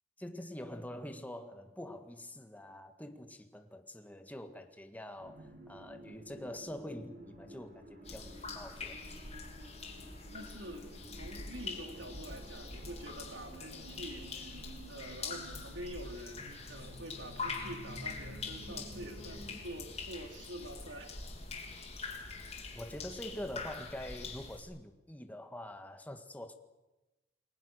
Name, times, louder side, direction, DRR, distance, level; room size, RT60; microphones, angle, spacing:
voice 1, 0.2-9.0 22.7-26.5, left 1 dB, 10° left, 6 dB, 1.7 m, -45 dB
sound 1, 5.2-19.6, right 1 dB, 50° right, 7.0 m, -52 dB
sound 2, 8.0-24.6, left 4 dB, 35° left, 3.5 m, -44 dB
voice 2, 10.0-14.6 14.9-21.2 22.2-22.5, right 1 dB, 65° right, 5 dB, 3.7 m, -47 dB
29.0 x 22.0 x 6.5 m, 1.0 s
head